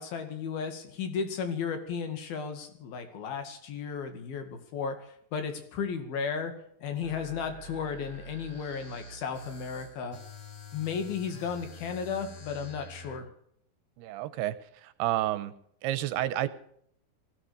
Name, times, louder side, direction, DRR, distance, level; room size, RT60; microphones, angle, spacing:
voice 1, 0.0-6.6 6.8-10.2 10.7-13.3, left 6 dB, 65° left, 7 dB, 3.9 m, -34 dB
sound 1, 7.0-13.2, equal, 40° left, 3.9 m, -47 dB
voice 2, 14.0-15.5 15.8-16.5, right 14 dB, 80° right, 13 dB, 2.8 m, -30 dB
19.0 x 15.0 x 4.9 m, 0.67 s
omnidirectional pair, 4.7 m